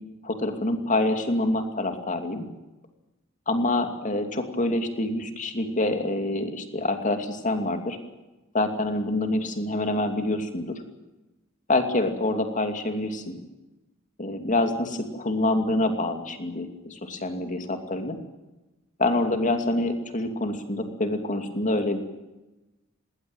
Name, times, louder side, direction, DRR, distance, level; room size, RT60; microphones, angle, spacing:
voice 1, 0.2-2.4 3.5-8.0 8.5-10.7 11.7-13.4 14.2-18.2 19.0-22.0, left 2 dB, 40° left, 6 dB, 2.7 m, -26 dB
19.5 x 19.0 x 9.1 m, 1.1 s
head